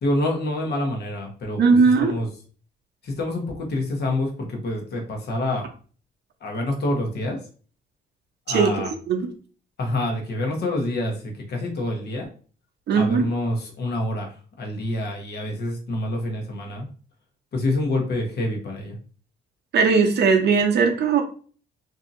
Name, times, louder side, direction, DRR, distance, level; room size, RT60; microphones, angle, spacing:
voice 1, 0.0-2.3 3.0-5.7 6.4-7.4 8.5-8.9 9.8-12.3 12.9-16.9 17.5-19.0, left 1 dB, 55° left, 1 dB, 1.0 m, -27 dB
voice 2, 1.6-2.1 8.5-9.3 12.9-13.2 19.7-21.2, right 5 dB, 60° right, 4 dB, 0.7 m, -19 dB
2.7 x 2.7 x 2.5 m, 0.41 s
cardioid pair, 90°, 20 cm